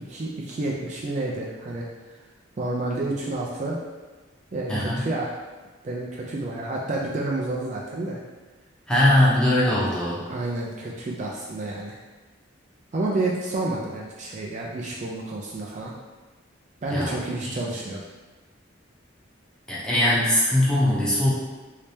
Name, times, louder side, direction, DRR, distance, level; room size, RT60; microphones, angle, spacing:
voice 1, 0.1-1.9 2.6-3.8 4.5-5.3 5.8-8.2 10.2-12.0 12.9-15.9 16.8-18.0, right 2 dB, 35° right, -3 dB, 0.4 m, -29 dB
voice 2, 4.7-5.0 8.9-10.2 16.9-17.1 19.7-21.3, left 1 dB, 5° left, -8 dB, 0.7 m, -20 dB
3.2 x 2.8 x 3.3 m, 1.2 s
head